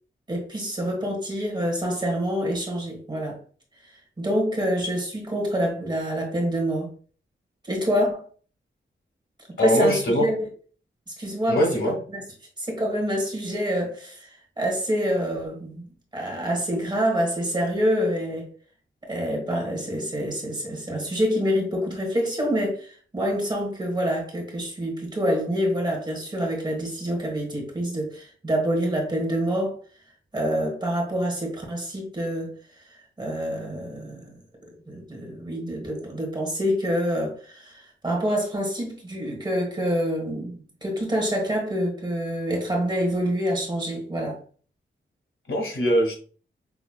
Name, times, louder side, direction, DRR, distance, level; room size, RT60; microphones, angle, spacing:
voice 1, 0.3-3.4 4.2-6.9 7.7-8.2 9.6-10.5 11.2-12.2 12.6-14.3 14.6-15.9 16.1-18.5 19.0-29.8 30.3-32.5 33.2-34.3 34.6-44.4, equal, 20° right, 1.3 m, -26 dB
voice 2, 9.6-10.3 11.5-12.0 45.5-46.1, equal, 85° left, 1.9 m, -21 dB
5.8 x 3.1 x 2.2 m
wide cardioid pair, 175°, 20 cm